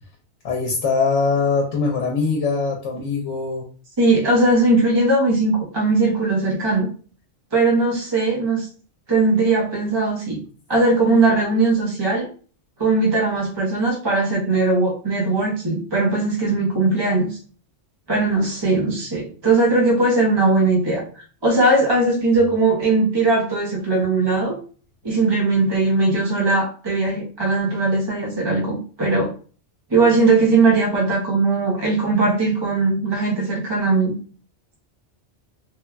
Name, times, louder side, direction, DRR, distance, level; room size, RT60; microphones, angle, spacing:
voice 1, 0.4-3.6, left 4 dB, 80° left, 0 dB, 0.9 m, -22 dB
voice 2, 4.0-6.9 7.5-8.7 9.1-10.4 10.7-12.3 12.8-17.4 18.1-21.0 21.4-24.6 25.0-29.3 29.9-34.1, right 3 dB, 30° right, -2 dB, 0.5 m, -19 dB
3.1 x 2.2 x 2.3 m, 0.39 s
omnidirectional pair, 1.2 m